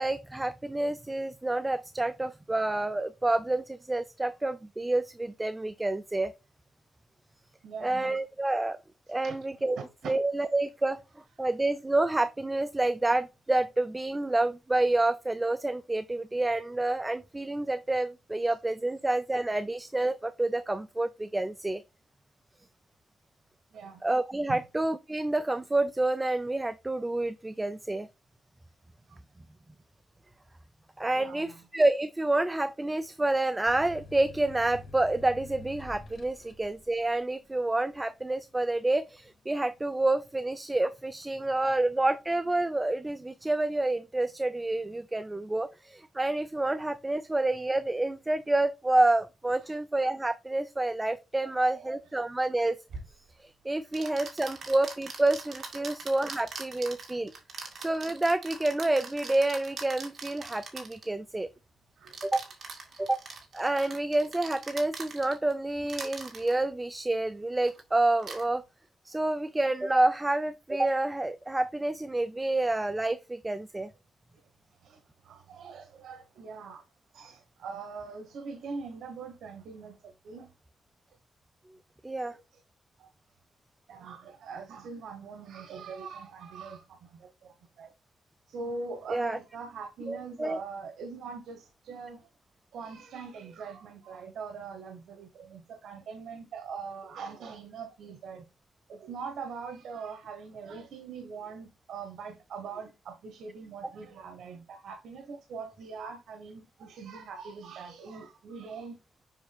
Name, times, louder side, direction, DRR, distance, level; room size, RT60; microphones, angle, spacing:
voice 1, 0.0-6.3 7.8-8.8 9.1-9.8 10.0-11.0 11.4-21.8 24.0-28.1 31.0-52.8 53.4-57.3 57.8-61.5 62.2-62.5 63.0-63.2 63.5-68.6 69.0-73.9 82.0-82.4 89.1-89.4 90.1-90.6, right 2 dB, 15° right, 0.4 m, -28 dB
voice 2, 7.6-8.2 9.2-9.4 10.0-10.1 23.7-24.0 24.5-24.6 29.1-29.2 31.1-31.6 36.4-36.5 41.4-41.5 49.6-49.8 51.4-51.9 54.4-54.6 55.9-56.0 62.0-62.2 74.8-76.8 77.1-80.5 82.2-82.6 83.0-83.1 83.9-87.9 88.5-92.3 92.7-98.4 98.9-109.0, right 5 dB, 85° right, 1.2 m, -42 dB
sound 1, 33.7-40.9 41.4-42.1, left 3 dB, 50° left, 1.1 m, -49 dB
sound 2, 52.9-53.1 53.9-61.1 62.1-65.5 65.9-66.5 67.6-67.8 68.2-68.4, right 4 dB, 50° right, 2.3 m, -42 dB
7.2 x 5.9 x 2.3 m
cardioid pair, 120°, 0 cm